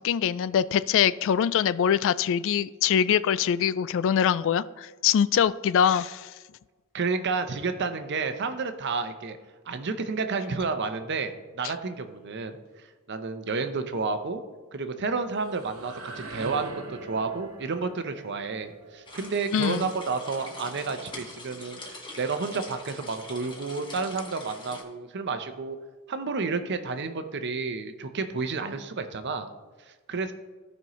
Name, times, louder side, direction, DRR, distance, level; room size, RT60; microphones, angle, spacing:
voice 1, 0.0-6.3 19.5-19.9, left 8 dB, 60° left, 18 dB, 0.3 m, -23 dB
voice 2, 6.9-9.4 9.7-14.4 14.7-25.8 26.1-29.5 29.8-30.3, right 4 dB, 55° right, 9 dB, 0.7 m, -31 dB
sound 1, 15.1-20.8, right 3 dB, 75° right, 1.4 m, -43 dB
sound 2, 19.1-24.8, left 2 dB, 20° left, 1.5 m, -43 dB
15.0 x 5.4 x 3.1 m, 1.3 s
head